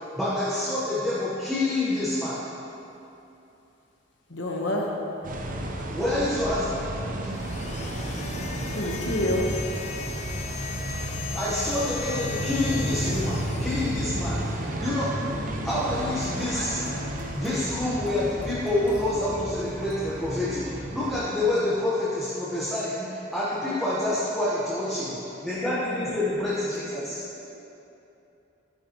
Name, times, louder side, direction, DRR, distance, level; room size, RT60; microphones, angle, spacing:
voice 1, 0.2-2.5 5.9-7.3 11.3-16.9 17.3-25.1 25.4-27.0, left 1 dB, ahead, -10 dB, 1.2 m, -27 dB
voice 2, 4.3-4.9 8.7-9.6, left 1 dB, 60° left, -1 dB, 1.1 m, -27 dB
sound 1, 5.2-21.3, right 1 dB, 40° right, 0.8 m, -32 dB
sound 2, 7.2-14.6, left 6 dB, 35° left, 0.4 m, -38 dB
sound 3, 15.2-20.6, left 1 dB, 65° right, 1.5 m, -44 dB
voice 3, 24.8-25.6 25.9-27.5, equal, 25° right, -8 dB, 2.2 m, -44 dB
11.5 x 10.0 x 3.1 m, 2.8 s
head